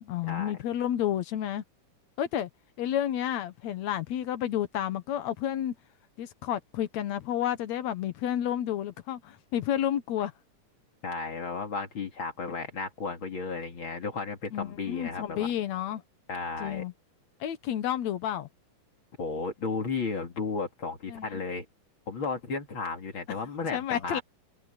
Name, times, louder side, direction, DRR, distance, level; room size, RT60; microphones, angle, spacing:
voice 1, 0.0-1.6 2.2-2.5 2.8-5.8 6.2-10.3 14.5-16.0 16.6-16.9 17.4-18.5 21.1-21.4 23.7-24.2, left 11 dB, 65° left, 2.1 m, -30 dB
voice 2, 11.0-15.5 16.3-16.8 19.2-21.7 22.1-24.2, left 4 dB, 40° left, 2.7 m, -34 dB
omnidirectional pair, 3.8 m